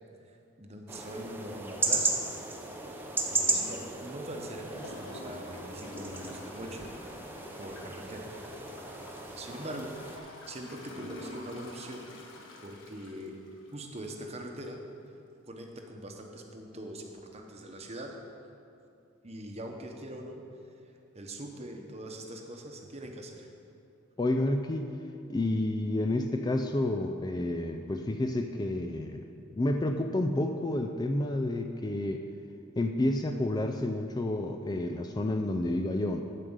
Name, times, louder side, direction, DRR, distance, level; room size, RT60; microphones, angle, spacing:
voice 1, 0.6-2.2 3.3-6.9 7.6-8.3 9.4-12.1 12.6-13.4 13.7-14.8 15.5-18.1 19.2-20.4 21.1-23.5, right 1 dB, 30° right, 2 dB, 1.0 m, -42 dB
sound 1, 0.9-10.2, right 2 dB, 10° right, 0.7 m, -35 dB
Gurgling / Toilet flush, 4.7-14.1 14.6-14.7, left 1 dB, 65° left, 1.4 m, -48 dB
voice 2, 24.2-24.9 25.3-29.3 29.5-32.2 32.8-36.2, left 1 dB, 20° left, 5 dB, 0.3 m, -30 dB
11.0 x 4.9 x 8.0 m, 2.6 s
head